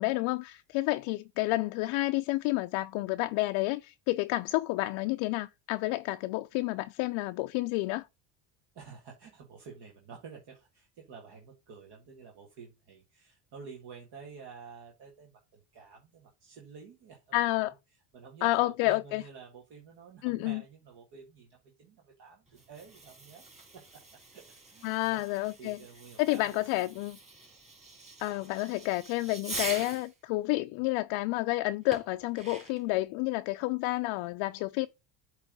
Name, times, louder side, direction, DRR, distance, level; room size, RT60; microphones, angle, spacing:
voice 1, 0.0-8.1 17.3-17.7 18.4-19.2 20.2-20.6 24.8-25.8 26.2-27.2 28.2-34.9, left 19 dB, 70° left, 0.6 m, -30 dB
voice 2, 8.8-23.4 23.7-24.0 24.3-25.2 25.6-26.8, right 5 dB, 50° right, 1.8 m, -50 dB
Fireworks, 22.5-30.1 31.9-32.9, right 3 dB, 15° right, 3.2 m, -44 dB
8.1 x 3.3 x 5.2 m
cardioid pair, 120°, 50 cm